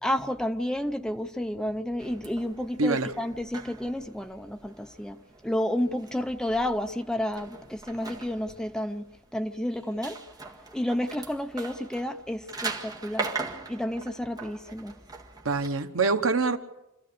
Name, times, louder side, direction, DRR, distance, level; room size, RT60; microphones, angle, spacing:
voice 1, 0.0-9.1 9.3-10.2 10.7-13.3 13.7-15.0, left 1 dB, 5° left, 0.7 m, -31 dB
sound 1, 2.0-15.7, right 3 dB, 20° right, 1.7 m, -41 dB
voice 2, 2.8-3.1 15.4-16.6, right 4 dB, 80° right, 1.1 m, -25 dB
26.0 x 15.0 x 6.8 m
head